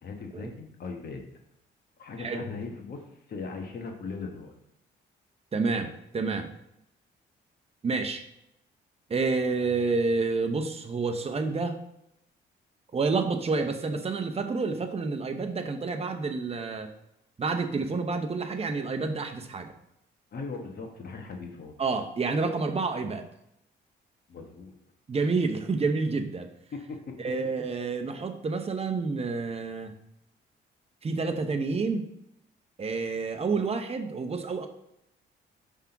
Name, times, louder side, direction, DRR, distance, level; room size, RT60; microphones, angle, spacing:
voice 1, 0.0-1.2 2.0-4.5 20.3-21.7 24.3-24.7 26.7-27.1, left 4 dB, 50° left, 3 dB, 1.2 m, -39 dB
voice 2, 5.5-6.5 7.8-8.2 9.1-11.8 12.9-16.9 17.4-19.7 21.8-23.3 25.1-26.5 27.2-29.9 31.0-32.1 32.8-34.7, right 4 dB, 30° right, 6 dB, 0.8 m, -29 dB
5.5 x 3.6 x 5.8 m, 0.81 s
cardioid pair, 90°, 20 cm